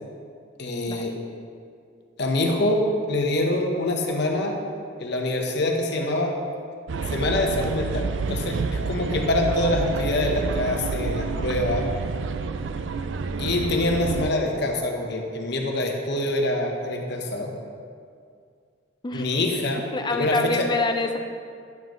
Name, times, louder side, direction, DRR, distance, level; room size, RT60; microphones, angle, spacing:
voice 1, 0.6-1.1 2.2-2.8 3.1-4.5 5.0-6.3 7.1-11.9 13.4-17.5 19.1-19.8 20.1-20.7, left 2 dB, 60° left, 1 dB, 1.0 m, -25 dB
sound 1, 6.9-14.3, right 4 dB, 65° right, 0.4 m, -28 dB
voice 2, 19.9-21.2, left 3 dB, 25° left, 5 dB, 0.5 m, -26 dB
10.5 x 7.4 x 3.1 m, 2.2 s
head